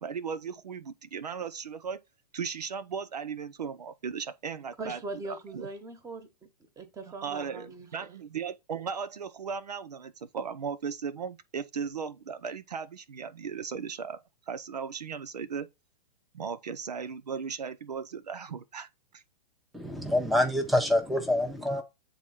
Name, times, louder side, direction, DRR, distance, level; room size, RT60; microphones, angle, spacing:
voice 1, 0.0-2.0 2.3-5.0 5.3-5.7 7.2-14.2 14.5-15.7 16.3-19.2, right 6 dB, 75° right, 0.7 m, -37 dB
voice 2, 4.8-6.3 6.8-8.1, right 3 dB, 15° right, 1.4 m, -40 dB
voice 3, 19.7-21.8, left 1 dB, ahead, 1.0 m, -26 dB
8.2 x 3.9 x 4.4 m
figure-of-eight pair, 110°, 21 cm